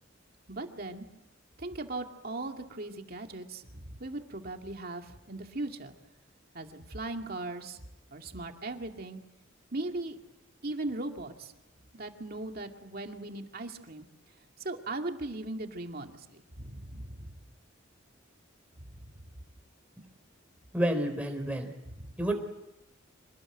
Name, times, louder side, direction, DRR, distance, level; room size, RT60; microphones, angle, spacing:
voice 1, 0.5-1.1 1.6-6.0 6.5-7.8 8.1-9.2 9.7-10.2 10.6-11.5 11.9-14.1 14.6-17.4 21.9-22.1, right 2 dB, 50° right, 4 dB, 2.3 m, -38 dB
voice 2, 20.7-21.7 22.2-22.3, right 1 dB, 5° right, 3 dB, 4.3 m, -29 dB
26.0 x 19.0 x 9.0 m, 0.89 s
head